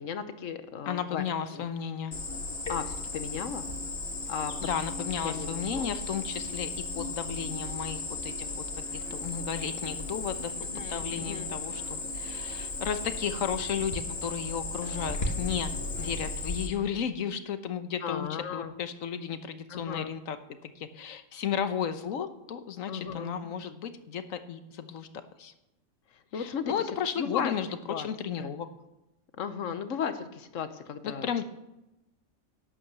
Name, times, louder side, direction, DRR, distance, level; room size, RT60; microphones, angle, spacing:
voice 1, 0.0-1.2 1.5-1.6 2.7-3.7 4.3-4.5 5.2-5.9 10.6-11.5 16.0-16.1 18.0-18.7 19.7-20.1 22.9-23.3 26.1-26.9 27.2-27.6 27.9-28.1 28.4-28.5 29.4-31.4, left 7 dB, 70° left, 11 dB, 1.3 m, -36 dB
voice 2, 0.9-2.1 4.6-8.6 8.9-15.7 16.0-20.4 20.6-25.5 26.3-27.7 28.0-28.7 31.0-31.4, left 8 dB, 90° left, 10 dB, 1.3 m, -34 dB
Cricket, 2.1-16.7, left 3 dB, 50° left, 1.8 m, -35 dB
11.0 x 8.7 x 6.8 m, 0.93 s
omnidirectional pair, 1.4 m